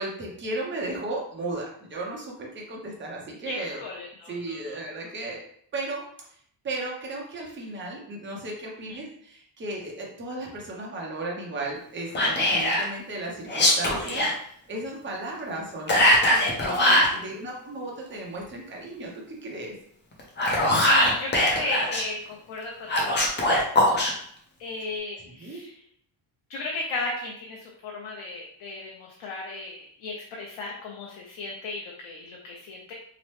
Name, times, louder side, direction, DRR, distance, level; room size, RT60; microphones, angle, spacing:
voice 1, 0.0-3.8 4.3-5.4 5.7-6.0 6.6-14.3 14.7-19.7 25.4-25.6, right 2 dB, 25° right, -2 dB, 0.6 m, -35 dB
voice 2, 3.4-4.8 8.9-9.0 16.7-17.0 20.4-23.3 24.6-25.7 26.5-32.9, left 2 dB, 85° left, -2 dB, 0.6 m, -35 dB
Whispering, 12.1-12.9 13.5-14.3 15.9-17.1 20.2-22.0 22.9-24.1, left 1 dB, 25° left, 0.4 m, -21 dB
2.9 x 2.0 x 3.1 m, 0.65 s
wide cardioid pair, 180°, 46 cm